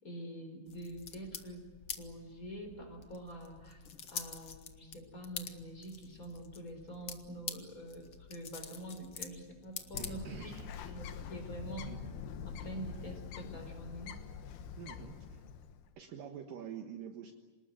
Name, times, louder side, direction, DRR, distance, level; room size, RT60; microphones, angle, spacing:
voice 1, 0.0-1.7 2.0-10.2 10.9-12.0 12.4-14.2, right 1 dB, 20° left, 5 dB, 4.5 m, -46 dB
sound 1, 0.7-10.6, left 7 dB, 65° left, 1.2 m, -47 dB
Bird, 9.9-15.9, left 7 dB, 90° left, 3.4 m, -45 dB
voice 2, 9.9-11.0 11.9-12.0 13.0-13.2 14.8-15.4 16.0-17.3, right 8 dB, 65° right, 3 dB, 2.9 m, -47 dB
27.0 x 19.5 x 9.2 m, 1.3 s
omnidirectional pair, 4.5 m